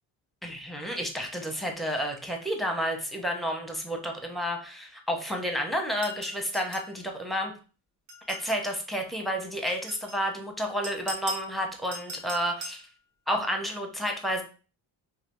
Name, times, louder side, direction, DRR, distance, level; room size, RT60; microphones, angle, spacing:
voice 1, 0.4-7.5 8.3-12.8 13.3-14.4, equal, ahead, 2 dB, 0.7 m, -31 dB
sound 1, 6.0-7.0 8.1-8.6 9.7-10.2 10.8-11.5 11.9-12.8, right 2 dB, 40° right, 1.0 m, -40 dB
3.2 x 2.8 x 3.0 m, 0.37 s
cardioid pair, 90°, 46 cm